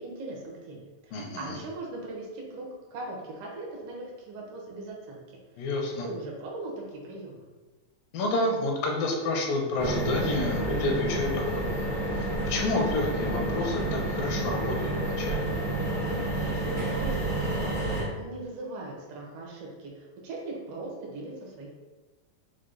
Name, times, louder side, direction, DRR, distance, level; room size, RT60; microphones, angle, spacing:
voice 1, 0.0-2.6 2.9-5.7 6.0-7.4 16.3-21.7, right 2 dB, 85° right, -2 dB, 1.2 m, -40 dB
voice 2, 1.1-1.6 5.6-6.1 8.1-11.9 12.2-14.8 15.0-15.5, left 2 dB, 80° left, 1 dB, 2.4 m, -29 dB
Train taking off, 9.8-18.0, right 1 dB, 60° right, 0.8 m, -30 dB
6.3 x 2.1 x 3.8 m, 1.2 s
omnidirectional pair, 4.0 m